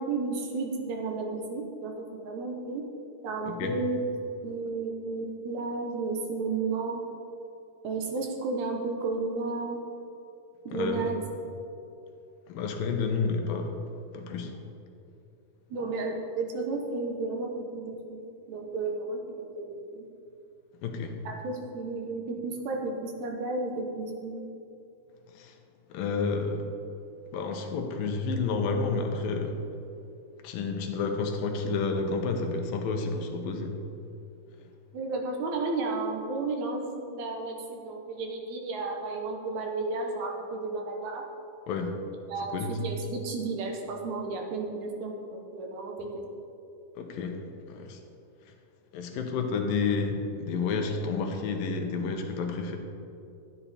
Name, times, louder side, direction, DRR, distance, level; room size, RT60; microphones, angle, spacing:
voice 1, 0.0-2.8 3.2-4.0 4.4-7.0 7.8-9.8 10.7-11.2 15.7-18.2 18.5-20.1 21.3-24.4 34.9-41.2 42.3-46.2, right 3 dB, 70° right, 1 dB, 1.9 m, -33 dB
voice 2, 3.5-3.8 10.7-11.1 12.5-13.8 14.1-14.5 20.8-21.2 25.3-25.5 25.9-26.7 27.3-29.6 30.4-33.8 41.7-42.0 42.5-42.8 47.0-47.4 47.7-48.0 48.9-52.8, left 4 dB, 75° left, 4 dB, 2.5 m, -30 dB
12.5 x 10.0 x 4.2 m, 2.7 s
omnidirectional pair, 4.4 m